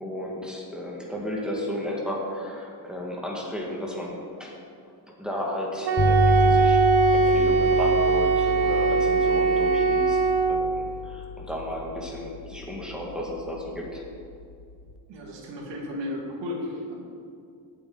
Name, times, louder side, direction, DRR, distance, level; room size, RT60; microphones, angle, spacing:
voice 1, 0.0-4.6 5.2-6.8 7.1-10.2 10.5-14.0, left 1 dB, ahead, -4 dB, 1.9 m, -33 dB
Wind instrument woodwind instrument, 5.8-10.7, right 5 dB, 65° right, 1.2 m, -21 dB
sound 1, 6.0-14.9, left 3 dB, 30° left, 0.9 m, -30 dB
voice 2, 15.1-17.0, left 1 dB, 80° right, -2 dB, 2.6 m, -34 dB
17.5 x 8.2 x 4.0 m, 2.4 s
cardioid pair, 150°, 43 cm